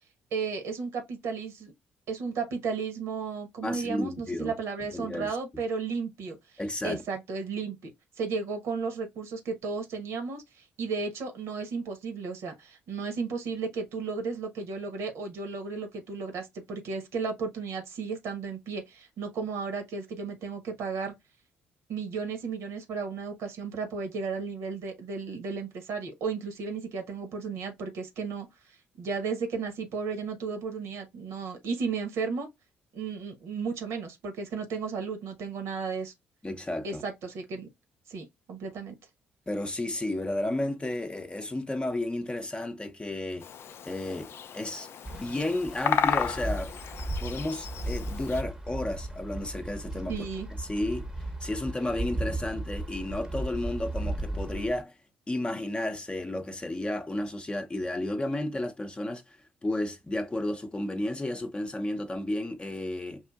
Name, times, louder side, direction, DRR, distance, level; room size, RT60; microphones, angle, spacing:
voice 1, 0.3-1.7 2.1-6.4 6.8-7.9 8.2-21.1 21.9-28.5 29.0-32.5 32.9-36.1 36.8-37.7 38.1-39.0 50.1-50.5, right 5 dB, 60° right, 1.0 m, -34 dB
voice 2, 3.6-4.5 4.9-5.3 6.6-7.0 36.4-37.0 39.5-43.5 43.9-46.7 47.2-50.3 50.6-54.9 55.3-59.2 59.6-63.2, left 1 dB, 20° left, 0.7 m, -32 dB
Bird vocalization bird call bird song, 43.4-48.4, left 8 dB, 50° left, 0.4 m, -33 dB
Wind, 45.1-54.8, right 1 dB, 10° right, 0.9 m, -36 dB
5.6 x 2.6 x 2.3 m
figure-of-eight pair, 45°, 5 cm